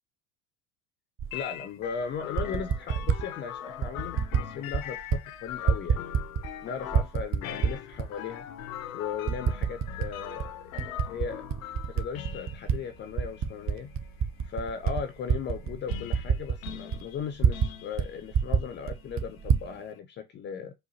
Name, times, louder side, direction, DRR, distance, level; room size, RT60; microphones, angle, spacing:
Typing, 1.2-1.3 2.2-3.2 3.8-4.4 4.7-5.2 5.5-6.6 6.9-8.1 8.6-8.7 9.3-10.1 10.4-12.8 13.1-17.7 18.0-18.1 18.3-19.7, right 7 dB, 30° right, 0.6 m, -27 dB
sound 1, 1.3-20.0, left 11 dB, 75° left, 0.5 m, -42 dB
voice 1, 1.3-6.1 6.6-8.5 8.9-11.5 11.9-13.9 14.4-20.7, left 7 dB, 30° left, 0.4 m, -37 dB
4.9 x 2.2 x 2.7 m
hypercardioid pair, 70°, 41 cm